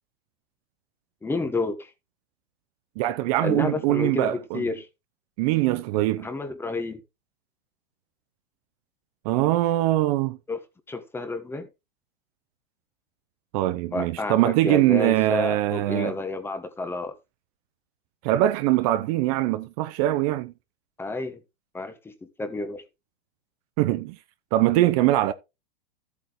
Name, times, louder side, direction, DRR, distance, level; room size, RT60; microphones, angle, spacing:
voice 1, 1.2-1.9 3.4-4.9 6.2-7.0 10.5-10.6 10.9-11.7 13.9-17.1 21.0-21.4 21.7-22.8, left 3 dB, 5° left, 1.3 m, -30 dB
voice 2, 3.0-4.6 5.4-6.3 9.2-10.4 13.5-16.1 18.2-20.5 23.8-24.2 24.5-25.3, right 15 dB, 40° right, 0.8 m, -22 dB
13.5 x 8.2 x 3.1 m
hypercardioid pair, 150°, 31 cm